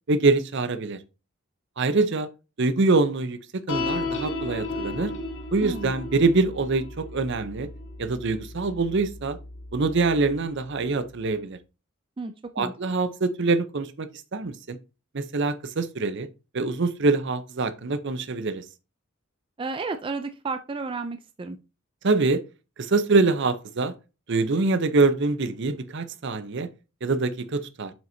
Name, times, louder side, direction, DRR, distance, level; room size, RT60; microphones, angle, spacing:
voice 1, 0.1-1.0 1.8-2.3 2.6-3.4 3.7-5.1 5.5-7.7 8.0-9.4 9.7-11.6 12.6-14.8 15.1-16.3 16.5-18.6 22.0-22.4 22.8-23.9 24.3-26.7 27.0-27.9, right 3 dB, 60° right, 0.7 m, -24 dB
sound 1, 3.7-10.3, left 2 dB, 65° left, 1.5 m, -34 dB
voice 2, 5.6-5.9 12.2-12.3 12.6-12.7 19.6-21.6, right 3 dB, 25° right, 0.4 m, -32 dB
7.6 x 5.6 x 2.7 m
head